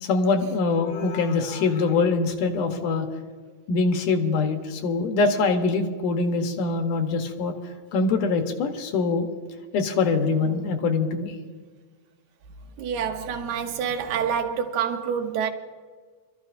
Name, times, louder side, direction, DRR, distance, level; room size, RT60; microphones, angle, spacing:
voice 1, 0.0-3.1 3.7-7.5 7.9-9.3 9.7-11.4, left 4 dB, 70° left, 2.3 m, -23 dB
voice 2, 12.8-15.5, right 7 dB, 70° right, 2.0 m, -27 dB
25.0 x 14.0 x 2.5 m
omnidirectional pair, 4.4 m